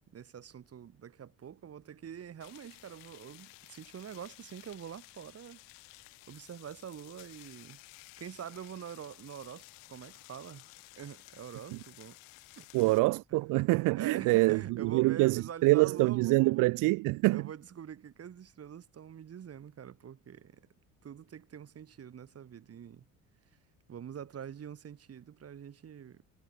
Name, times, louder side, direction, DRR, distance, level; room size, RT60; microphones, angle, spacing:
voice 1, 0.1-5.6 6.3-7.8 8.2-10.7 11.0-12.2 12.6-12.9 13.3-13.4 13.9-16.7 17.3-20.6 21.0-23.0 23.9-26.2, right 8 dB, 45° right, 5.2 m, -45 dB
sound 1, 2.4-13.0, left 36 dB, 90° left, 7.0 m, -55 dB
voice 2, 12.7-17.5, right 22 dB, 70° right, 0.6 m, -26 dB
supercardioid pair, 90°, 33 cm